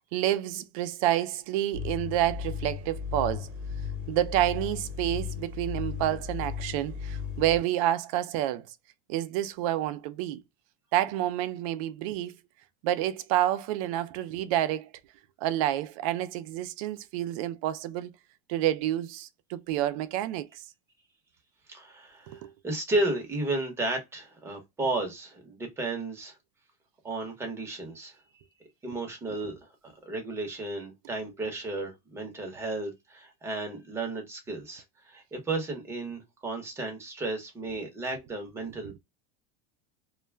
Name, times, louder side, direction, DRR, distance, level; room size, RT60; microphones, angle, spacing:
voice 1, 0.1-3.5 4.1-8.7 9.1-10.4 10.9-12.4 12.8-14.9 15.4-18.1 18.5-20.6 22.3-22.5 38.8-38.9, right 13 dB, 65° right, 0.4 m, -29 dB
sound 1, 1.7-7.6, left 7 dB, 45° right, 1.0 m, -35 dB
voice 2, 21.7-26.4 27.0-28.2 28.8-39.0, right 2 dB, 15° right, 0.9 m, -33 dB
2.3 x 2.1 x 3.2 m
supercardioid pair, 155°, 19 cm